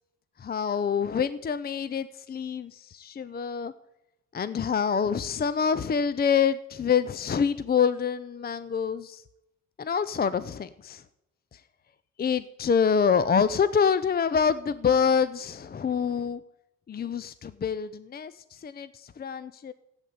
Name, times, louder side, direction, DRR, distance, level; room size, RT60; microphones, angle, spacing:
voice 1, 0.4-3.7 4.3-9.2 9.8-11.0 11.5-11.6 12.2-16.4 16.9-19.7, left 6 dB, 30° left, 14 dB, 0.6 m, -26 dB
14.5 x 8.3 x 9.5 m, 0.92 s
cardioid pair, 90°, 30 cm